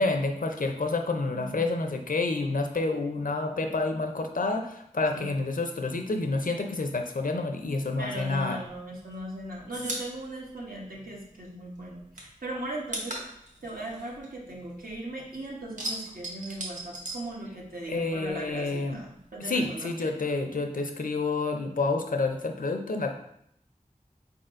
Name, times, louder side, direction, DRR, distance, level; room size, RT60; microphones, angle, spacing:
voice 1, 0.0-8.6 17.9-19.0 19.4-23.1, left 3 dB, 75° left, 5 dB, 0.5 m, -29 dB
voice 2, 1.3-1.6 5.1-5.3 8.0-13.3 13.6-20.2, right 1 dB, 85° right, -3 dB, 1.1 m, -38 dB
sound 1, 8.7-11.5 11.8-15.1 15.4-18.0 18.2-19.3, right 1 dB, 60° right, 1.0 m, -38 dB
4.3 x 4.1 x 2.5 m, 0.72 s
wide cardioid pair, 40°, 14 cm